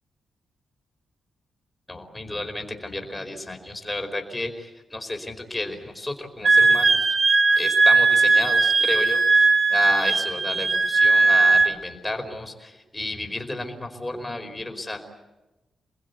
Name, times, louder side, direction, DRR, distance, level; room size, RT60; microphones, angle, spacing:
voice 1, 1.9-7.0 7.6-15.0, left 2 dB, 10° left, 4 dB, 4.8 m, -32 dB
Wind instrument woodwind instrument, 6.4-11.8, right 3 dB, 35° right, 2.2 m, -18 dB
29.5 x 21.0 x 8.4 m, 1.1 s
wide cardioid pair, 135°, 0 cm